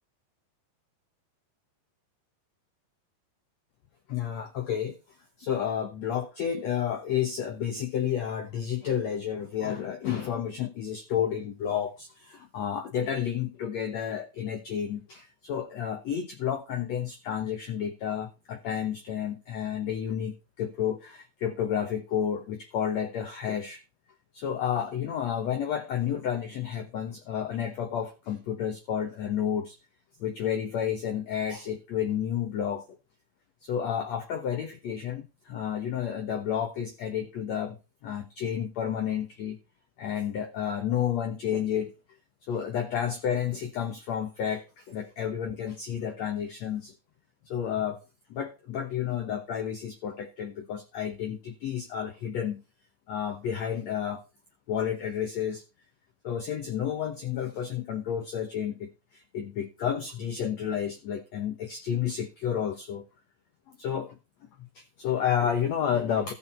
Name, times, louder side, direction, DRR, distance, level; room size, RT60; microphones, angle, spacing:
voice 1, 4.1-5.0 5.4-23.8 24.3-29.8 30.2-32.9 33.6-37.8 38.0-39.6 40.0-41.9 42.5-46.9 47.4-48.0 48.3-52.6 53.1-54.2 54.7-55.6 56.2-63.0 63.7-64.2 64.7-66.3, left 9 dB, 75° left, 6 dB, 1.6 m, -31 dB
14.5 x 6.2 x 4.4 m, 0.28 s
omnidirectional pair, 4.6 m